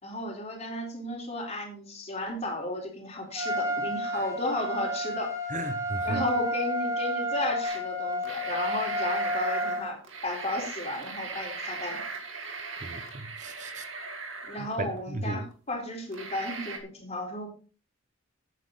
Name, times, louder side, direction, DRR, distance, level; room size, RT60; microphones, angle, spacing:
voice 1, 0.0-5.3 6.0-12.0 14.5-17.5, left 1 dB, 30° left, 4.0 m, -34 dB
Trumpet, 3.3-9.9, equal, 15° right, 3.7 m, -31 dB
voice 2, 5.5-6.2 12.8-13.8 14.6-15.4, right 2 dB, 35° right, 0.8 m, -36 dB
sound 1, 7.6-7.8 8.1-15.0 15.5-15.6 16.1-16.8, right 4 dB, 70° right, 2.3 m, -38 dB
12.5 x 9.2 x 4.0 m
head